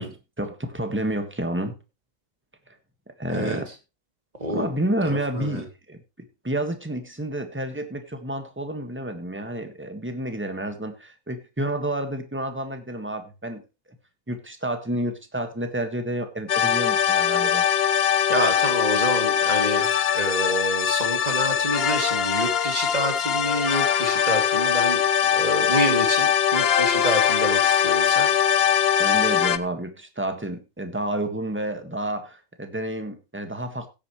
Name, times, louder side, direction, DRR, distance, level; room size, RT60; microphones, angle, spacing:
voice 1, 0.0-1.7 3.1-3.7 4.5-13.6 14.3-17.7 29.0-33.9, right 1 dB, 10° right, 7 dB, 1.6 m, -30 dB
voice 2, 3.3-3.6 4.4-4.7 5.3-5.6 18.3-25.0 25.3-28.3, right 1 dB, 25° right, 4 dB, 2.9 m, -28 dB
sound 1, 16.5-29.6, left 9 dB, 55° left, 0.7 m, -21 dB
16.0 x 9.1 x 3.2 m, 0.27 s
omnidirectional pair, 1.6 m